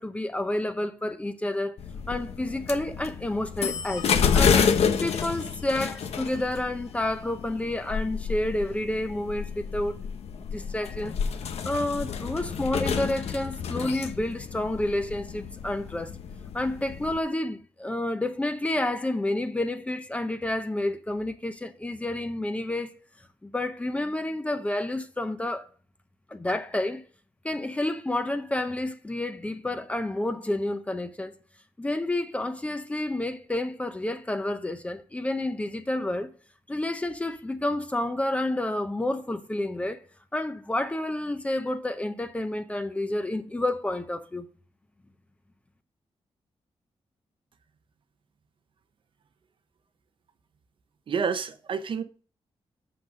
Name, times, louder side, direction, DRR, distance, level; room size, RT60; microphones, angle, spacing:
voice 1, 0.0-1.8 2.1-4.7 5.0-10.0 10.5-11.2 11.4-16.1 16.5-22.9 23.4-25.6 26.3-27.0 27.4-31.3 31.8-36.3 36.7-40.0 40.3-44.4, left 1 dB, 10° left, 0.7 m, -29 dB
sound 1, 1.8-17.2, left 6 dB, 80° left, 1.0 m, -29 dB
voice 2, 51.1-52.0, right 6 dB, 55° right, 0.7 m, -29 dB
6.7 x 5.9 x 6.2 m
wide cardioid pair, 175°, 10 cm